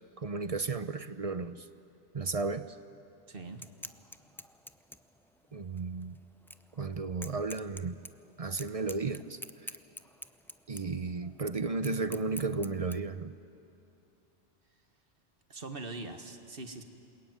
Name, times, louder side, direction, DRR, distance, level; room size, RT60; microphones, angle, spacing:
voice 1, 0.2-1.7 2.1-2.8 5.5-6.2 6.8-7.9 8.4-9.7 10.7-13.3, right 4 dB, 35° right, 12 dB, 0.7 m, -34 dB
voice 2, 3.3-3.7 15.5-16.8, right 3 dB, 55° right, 6 dB, 1.8 m, -42 dB
sound 1, 3.4-13.0, equal, 5° left, 0.5 m, -48 dB
27.5 x 22.0 x 9.6 m, 2.7 s
omnidirectional pair, 1.1 m